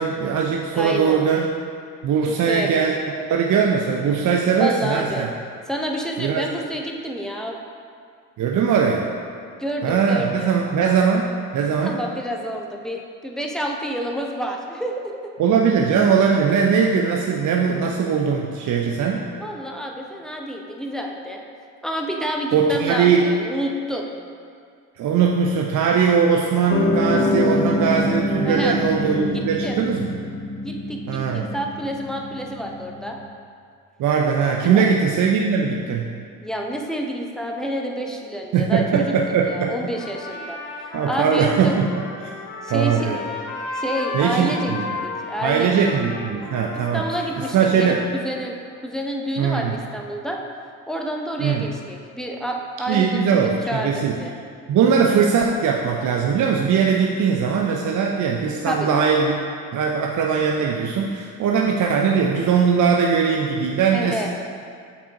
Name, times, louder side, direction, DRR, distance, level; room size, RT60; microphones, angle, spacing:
voice 1, 0.0-1.5 2.0-2.9 3.3-5.3 6.2-6.5 8.4-9.1 9.8-11.3 11.5-12.0 15.4-19.3 22.5-23.3 25.0-30.2 31.1-31.5 34.0-36.1 38.5-39.7 40.9-42.1 42.7-43.2 44.1-44.8 45.4-47.1 47.4-48.0 49.4-49.8 51.4-51.7 52.9-54.1 54.7-59.4 59.7-64.3, right 6 dB, 45° right, 0 dB, 0.6 m, -20 dB
voice 2, 0.7-1.2 2.3-2.8 4.5-5.3 5.7-7.6 9.6-10.5 11.8-15.4 19.4-21.4 21.8-24.1 28.4-28.8 29.3-29.8 30.6-33.2 34.6-34.9 36.4-41.8 42.6-43.3 43.7-44.7 45.0-45.9 46.7-48.6 48.8-50.4 50.9-54.3 58.7-59.5 63.9-64.3, equal, ahead, 0 dB, 0.8 m, -29 dB
Piano, 26.7-33.2, left 1 dB, 35° left, 0.8 m, -25 dB
Trumpet, 39.9-48.4, left 2 dB, 55° left, 1.3 m, -34 dB
7.4 x 5.4 x 2.9 m, 2.2 s
hypercardioid pair, 50°, 43 cm